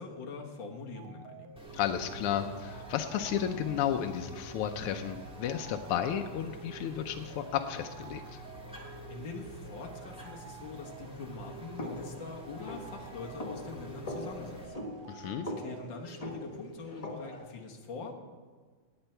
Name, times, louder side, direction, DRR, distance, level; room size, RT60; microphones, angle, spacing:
voice 1, 0.0-1.6 9.1-18.2, left 4 dB, 60° left, 1 dB, 2.0 m, -43 dB
sound 1, 0.9-17.4, right 6 dB, 75° right, 1.6 m, -50 dB
sound 2, 1.6-14.7, right 1 dB, 5° right, 1.5 m, -48 dB
voice 2, 1.7-8.4 15.1-15.5, left 9 dB, 85° left, 5 dB, 1.6 m, -33 dB
sound 3, 11.8-17.5, left 1 dB, 40° left, 0.5 m, -42 dB
17.5 x 8.9 x 4.5 m, 1.5 s
omnidirectional pair, 2.4 m